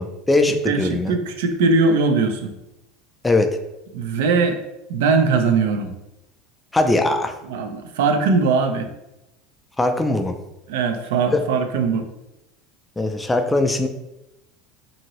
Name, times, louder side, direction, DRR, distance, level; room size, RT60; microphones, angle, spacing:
voice 1, 0.0-1.1 3.2-3.5 6.7-7.3 9.8-10.3 11.3-11.4 13.0-13.9, left 2 dB, 10° left, 6 dB, 0.3 m, -20 dB
voice 2, 0.7-2.5 3.9-4.6 4.9-5.9 7.5-8.9 10.7-12.1, right 4 dB, 85° right, 6 dB, 0.4 m, -20 dB
2.8 x 2.6 x 2.9 m, 0.90 s
supercardioid pair, 115°, 0 cm